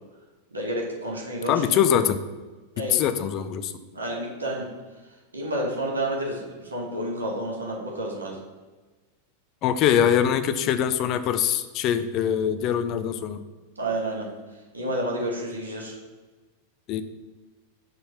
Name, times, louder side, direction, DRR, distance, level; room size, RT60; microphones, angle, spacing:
voice 1, 0.5-1.6 2.8-3.0 3.9-4.7 5.3-8.4 13.8-14.3 14.7-15.9, right 1 dB, 75° right, -2 dB, 1.9 m, -30 dB
voice 2, 1.5-2.2 2.9-3.7 9.6-13.4 16.9-17.0, left 9 dB, 40° left, 11 dB, 0.5 m, -23 dB
6.3 x 3.9 x 5.6 m, 1.3 s
figure-of-eight pair, 90°, 0 cm